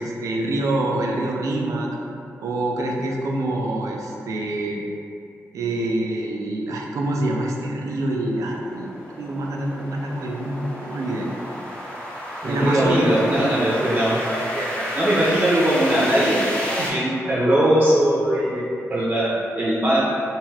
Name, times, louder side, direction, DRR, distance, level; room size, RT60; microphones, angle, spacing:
voice 1, 0.0-1.9 2.4-4.8 5.5-8.9 9.2-11.3 12.4-13.1 16.8-17.1, right 1 dB, 85° right, 0 dB, 0.4 m, -26 dB
sound 1, 7.8-16.9, equal, 20° left, 0.7 m, -32 dB
voice 2, 12.4-20.2, right 1 dB, 30° right, -8 dB, 0.5 m, -21 dB
2.6 x 2.3 x 3.2 m, 2.7 s
cardioid pair, 90°, 5 cm